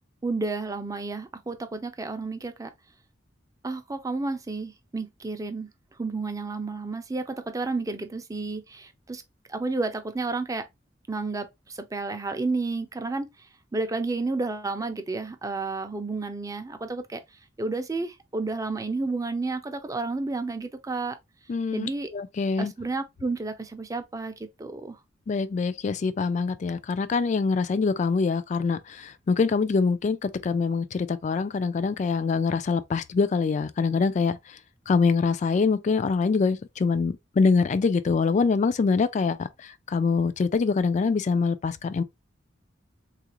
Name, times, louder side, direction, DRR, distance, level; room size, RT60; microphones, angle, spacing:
voice 1, 0.2-2.7 3.6-5.7 6.0-9.2 9.5-10.6 11.1-13.3 13.7-17.2 17.6-21.2 21.7-22.1 22.6-25.0, right 3 dB, 20° right, 0.5 m, -31 dB
voice 2, 21.5-22.7 25.3-34.6 34.9-42.0, left 4 dB, 40° left, 0.3 m, -24 dB
3.6 x 2.4 x 2.9 m
head